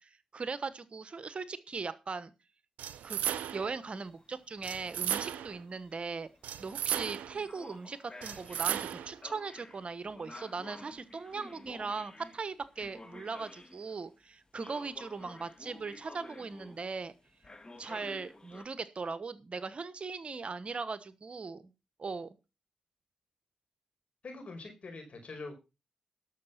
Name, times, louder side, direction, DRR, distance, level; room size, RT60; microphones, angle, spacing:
voice 1, 0.0-2.3 3.0-6.3 6.6-17.1 17.8-21.7 22.0-22.4, right 4 dB, 50° right, 15 dB, 1.1 m, -39 dB
sound 1, 2.8-3.8 4.6-5.6 6.4-7.4 8.2-9.2, right 10 dB, 85° right, 0.6 m, -35 dB
sound 2, 3.9-14.1 14.6-17.1 17.4-18.7, left 2 dB, 35° left, 2.2 m, -51 dB
voice 2, 24.2-25.5, left 3 dB, 60° left, 5 dB, 5.0 m, -44 dB
12.0 x 6.5 x 5.8 m, 0.29 s
supercardioid pair, 45°, 2 cm